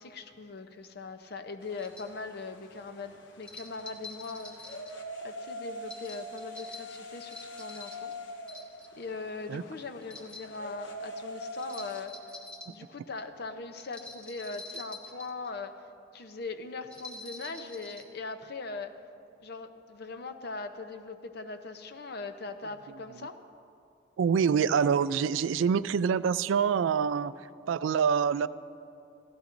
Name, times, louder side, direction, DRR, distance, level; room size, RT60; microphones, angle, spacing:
voice 1, 0.0-4.6 5.2-8.1 9.0-12.1 12.7-15.8 16.1-18.9 19.4-23.4, left 3 dB, 55° left, 7 dB, 0.7 m, -40 dB
sound 1, 1.6-12.1, equal, 75° left, 1.0 m, -44 dB
sound 2, 1.8-2.1 3.4-4.9 5.9-8.1 8.5-9.1 10.0-10.6 11.6-12.7 13.8-15.5 16.9-18.1, left 2 dB, 5° left, 1.0 m, -46 dB
voice 2, 24.2-27.3 27.7-28.5, right 6 dB, 80° right, 16 dB, 0.3 m, -25 dB
16.5 x 14.5 x 2.6 m, 2.5 s
head